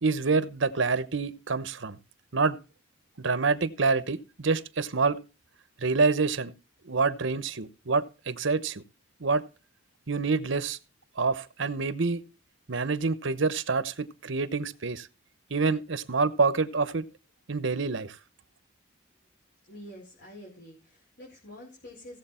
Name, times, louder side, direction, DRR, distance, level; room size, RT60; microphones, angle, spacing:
voice 1, 0.0-2.0 2.3-2.6 3.2-5.2 5.8-6.5 6.8-8.8 9.2-9.4 10.1-10.8 11.2-12.2 12.7-15.1 15.5-17.0 17.5-18.2, right 4 dB, 75° right, 1.0 m, -27 dB
voice 2, 19.6-22.2, left 1 dB, 55° left, 4.8 m, -47 dB
17.0 x 7.6 x 4.4 m
head